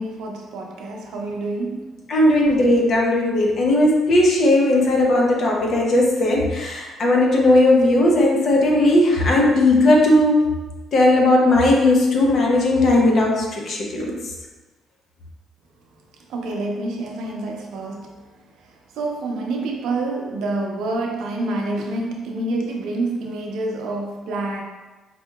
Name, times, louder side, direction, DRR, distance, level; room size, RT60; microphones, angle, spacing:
voice 1, 0.0-2.0 16.3-18.3 19.0-24.6, right 2 dB, 80° right, 1 dB, 0.5 m, -27 dB
voice 2, 2.1-10.4 10.9-14.1, left 1 dB, 45° left, -1 dB, 0.6 m, -17 dB
4.2 x 2.8 x 2.3 m, 1.2 s
cardioid pair, 150°, 0 cm